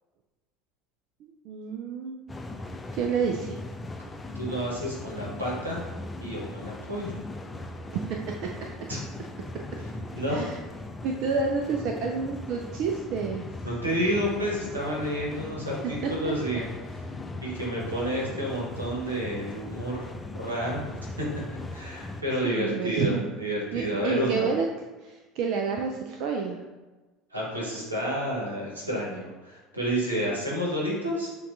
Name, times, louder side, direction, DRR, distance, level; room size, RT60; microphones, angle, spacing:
voice 1, 1.2-2.2 2.9-3.6 8.1-8.2 10.3-10.6 11.0-13.4 16.0-16.3 22.4-23.3 23.7-24.7 25.0-26.6, right 5 dB, 55° right, 2 dB, 0.3 m, -29 dB
sound 1, 2.3-22.2, left 2 dB, 15° left, 0.4 m, -39 dB
voice 2, 4.3-5.8 6.2-7.2 8.9-9.0 10.2-10.5 13.6-16.7 17.4-20.1 20.3-20.8 21.2-21.3 21.7-24.5 27.3-31.3, equal, 85° right, -4 dB, 1.0 m, -30 dB
6.9 x 2.3 x 2.5 m, 1.2 s
figure-of-eight pair, 65°, 0 cm